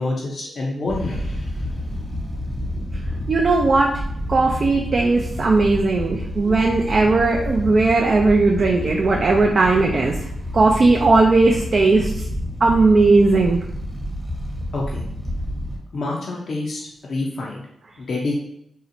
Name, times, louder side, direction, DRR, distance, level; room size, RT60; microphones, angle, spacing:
voice 1, 0.0-1.5 14.7-15.0 15.9-17.6 18.0-18.3, left 2 dB, 65° left, -3 dB, 0.5 m, -27 dB
sound 1, 0.9-15.8, equal, 15° right, 0.9 m, -29 dB
voice 2, 3.3-3.9 4.3-10.2 10.5-12.1 12.6-13.6, right 3 dB, 55° right, 0 dB, 0.3 m, -17 dB
2.7 x 2.1 x 2.6 m, 0.74 s
supercardioid pair, 45°, 0 cm